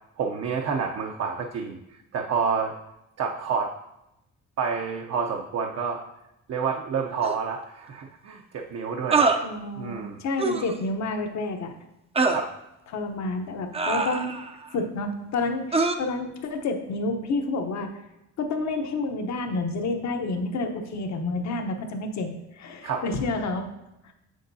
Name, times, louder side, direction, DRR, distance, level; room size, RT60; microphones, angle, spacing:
voice 1, 0.2-1.8 2.1-2.7 3.2-3.7 4.6-6.0 6.5-9.3 9.8-10.2 12.3-12.5 22.8-23.0, right 6 dB, 55° right, 1 dB, 0.7 m, -28 dB
sound 1, 7.2-7.3 9.1-9.4 10.4-10.7 12.2-12.5 13.7-14.5 15.7-16.0, right 4 dB, 20° right, 0.5 m, -23 dB
voice 2, 9.4-11.7 12.9-14.3 14.7-17.9 18.4-22.3 22.6-23.6, left 3 dB, 65° left, 5 dB, 1.0 m, -29 dB
7.5 x 6.4 x 2.7 m, 0.87 s
cardioid pair, 90°, 30 cm